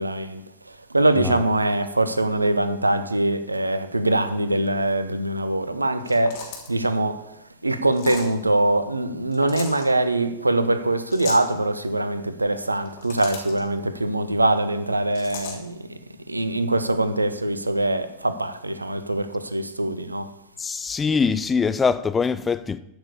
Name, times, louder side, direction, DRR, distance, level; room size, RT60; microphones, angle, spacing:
voice 1, 0.0-16.0 16.3-20.3, right 1 dB, 80° right, 0.8 m, -23 dB
sound 1, 6.0-6.8 7.9-8.3 9.3-9.8 11.1-11.5 12.8-13.6 15.2-15.6, left 6 dB, 50° left, 3.1 m, -36 dB
voice 2, 20.6-22.8, left 5 dB, 15° left, 0.6 m, -23 dB
13.5 x 6.3 x 6.9 m
figure-of-eight pair, 90°, 0 cm